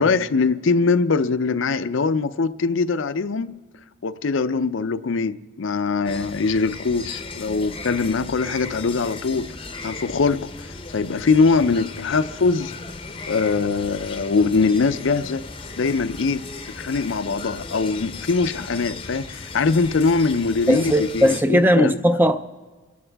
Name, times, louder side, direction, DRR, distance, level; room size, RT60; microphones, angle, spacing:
voice 1, 0.0-3.6 4.0-9.5 9.8-12.7 13.3-15.4 15.8-16.4 16.7-22.0, left 4 dB, 75° left, 0.5 m, -22 dB
sound 1, 6.0-21.4, left 3 dB, 25° left, 0.7 m, -36 dB
voice 2, 20.7-22.4, equal, 10° right, 0.4 m, -18 dB
28.5 x 11.0 x 3.4 m
head